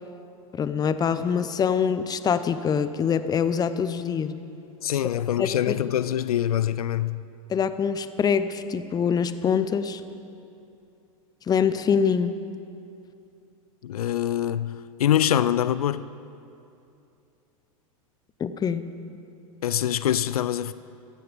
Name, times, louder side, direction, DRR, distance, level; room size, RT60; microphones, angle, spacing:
voice 1, 0.5-4.3 5.4-5.7 7.5-10.0 11.5-12.4 18.4-18.8, left 7 dB, 20° left, 0.7 m, -24 dB
voice 2, 4.8-7.2 13.8-16.1 19.6-20.7, left 11 dB, 85° left, 0.4 m, -24 dB
16.5 x 13.5 x 5.2 m
hypercardioid pair, 100°, 18 cm